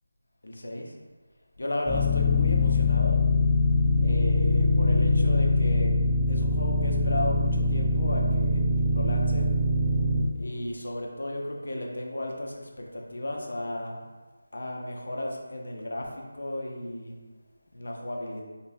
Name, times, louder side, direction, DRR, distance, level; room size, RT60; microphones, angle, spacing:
voice 1, 0.4-1.0 1.6-3.2 4.0-6.0 6.3-9.5 10.4-14.1 14.5-17.1 17.7-18.4, left 1 dB, 70° left, 0 dB, 0.5 m, -34 dB
sound 1, 1.9-10.2, left 2 dB, 5° left, 0.4 m, -23 dB
2.6 x 2.2 x 3.3 m, 1.3 s
figure-of-eight pair, 170°, 0 cm